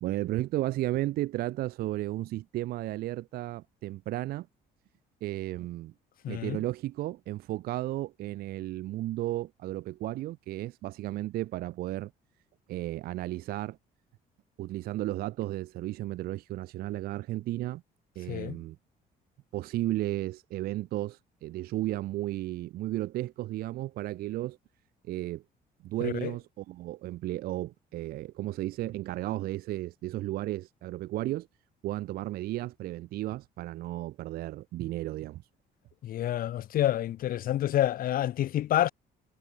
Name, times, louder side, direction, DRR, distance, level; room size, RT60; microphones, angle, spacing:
voice 1, 0.0-4.5 5.2-5.9 6.3-12.1 12.7-13.8 14.6-17.8 18.2-18.8 19.5-24.6 25.1-25.4 25.8-31.5 31.8-35.4, right 16 dB, 65° right, 0.5 m, -34 dB
voice 2, 6.2-6.6 18.3-18.6 26.0-26.3 36.0-38.9, left 12 dB, 60° left, 0.9 m, -28 dB
cardioid pair, 110°, 17 cm